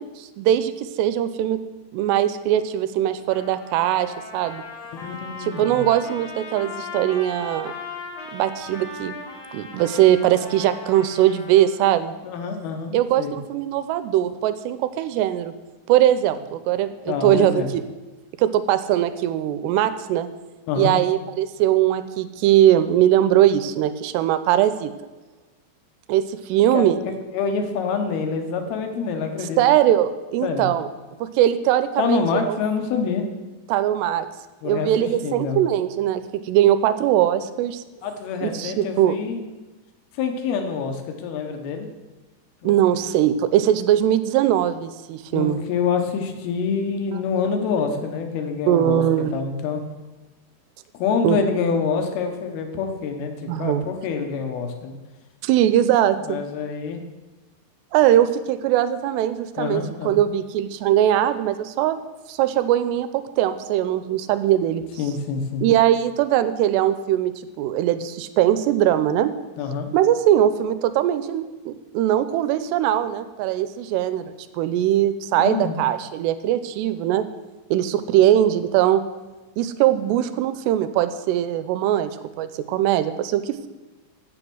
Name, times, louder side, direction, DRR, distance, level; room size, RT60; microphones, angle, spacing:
voice 1, 0.0-1.6 1.9-4.6 5.4-7.7 8.3-9.1 9.5-12.1 12.9-15.5 15.9-17.8 18.4-20.3 20.8-24.9 26.1-27.0 29.6-30.9 31.2-32.6 33.7-34.3 34.7-37.8 38.4-39.2 42.6-45.6 48.7-49.3 51.2-51.4 53.5-53.9 55.4-56.4 57.9-62.0 62.3-64.8 65.6-69.3 69.9-77.2 77.7-79.0 79.6-82.1 82.4-83.7, right 12 dB, 85° right, 12 dB, 2.7 m, -21 dB
Trumpet, 3.3-11.7, left 3 dB, 55° left, 1.8 m, -38 dB
voice 2, 4.9-5.8 12.2-13.4 17.1-17.7 20.7-21.0 26.7-27.0 27.3-29.6 30.4-30.7 32.0-33.3 34.6-35.6 38.0-39.4 40.2-41.9 42.6-43.1 45.3-49.0 49.3-49.8 50.9-55.0 56.2-57.0 59.6-60.2 65.0-65.6 69.6-69.9 75.4-75.8, left 5 dB, 70° left, 5 dB, 2.9 m, -26 dB
10.0 x 8.0 x 6.2 m, 1.2 s
omnidirectional pair, 4.8 m